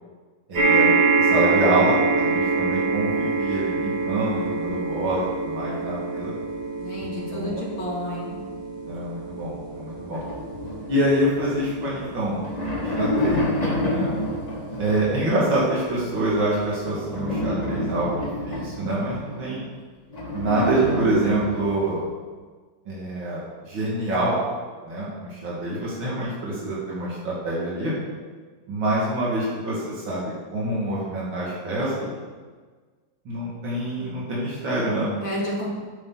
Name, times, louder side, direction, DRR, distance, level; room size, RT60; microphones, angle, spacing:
sound 1, 0.5-15.1 15.8-15.9 16.2-16.3, right 4 dB, 60° right, 4.8 m, -25 dB
voice 1, 0.5-0.9 1.2-6.3 7.0-7.6 8.9-10.2 10.9-12.4 12.7-13.5 13.8-14.1 14.8-19.6 20.3-22.0 22.9-24.4 24.8-27.9 28.7-32.1 33.2-35.1, right 1 dB, 85° right, -7 dB, 3.2 m, -26 dB
voice 2, 6.8-8.4 35.2-35.7, left 1 dB, 80° left, -5 dB, 3.9 m, -30 dB
sound 2, 10.1-11.7 12.2-15.3 16.9-19.4 20.1-22.0, left 1 dB, 20° left, 1.8 m, -28 dB
14.5 x 9.0 x 4.2 m, 1.5 s
omnidirectional pair, 2.0 m